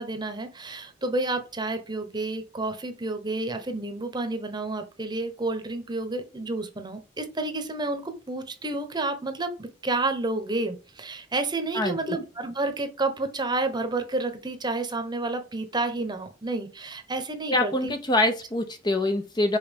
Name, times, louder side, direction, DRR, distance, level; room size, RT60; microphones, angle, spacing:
voice 1, 0.0-18.0, right 2 dB, 20° right, 8 dB, 1.0 m, -30 dB
voice 2, 11.7-12.2 17.5-19.6, left 2 dB, 20° left, 7 dB, 0.7 m, -25 dB
5.5 x 5.4 x 5.3 m, 0.32 s
head